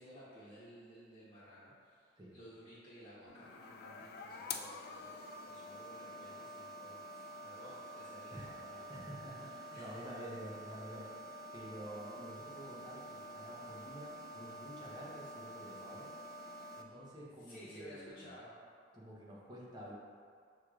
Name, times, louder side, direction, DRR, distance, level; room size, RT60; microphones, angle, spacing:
voice 1, 0.0-9.1 9.7-10.1 17.4-18.6, equal, 30° left, -14 dB, 1.0 m, -55 dB
sound 1, 3.3-16.8, left 1 dB, 55° left, 0.3 m, -48 dB
voice 2, 8.9-11.2 11.5-16.2 16.7-18.4 18.9-19.9, equal, 25° right, -5 dB, 0.8 m, -49 dB
6.4 x 3.0 x 2.4 m, 2.1 s
head